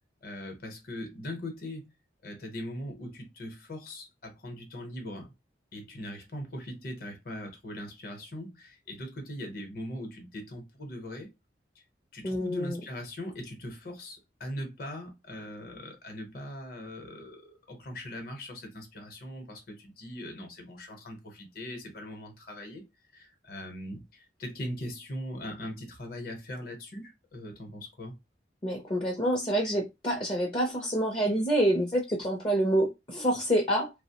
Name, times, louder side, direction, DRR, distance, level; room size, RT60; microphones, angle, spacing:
voice 1, 0.2-1.9 2.2-5.3 5.7-11.3 11.7-11.8 12.1-28.1, left 1 dB, 50° left, 0.8 m, -40 dB
voice 2, 12.2-12.8 28.6-33.9, right 1 dB, 25° left, 0.5 m, -27 dB
2.8 x 2.0 x 2.8 m
head